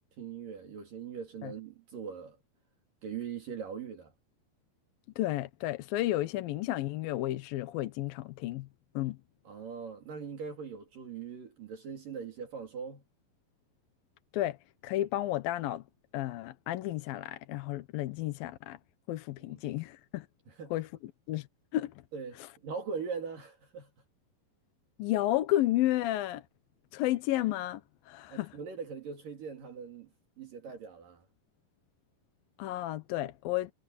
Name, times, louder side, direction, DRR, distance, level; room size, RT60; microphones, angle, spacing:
voice 1, 0.2-2.4 3.0-4.1 9.4-13.0 19.4-19.6 20.5-20.7 22.1-23.9 28.3-30.1 30.4-31.3, right 6 dB, 65° right, 4.5 m, -41 dB
voice 2, 5.2-8.7 8.9-9.2 14.3-14.6 14.8-15.8 16.1-18.8 19.1-20.3 20.7-21.5 21.7-21.9 25.0-26.4 26.9-27.8 28.1-28.6 32.6-33.7, left 15 dB, 75° left, 2.7 m, -32 dB
omnidirectional pair, 4.3 m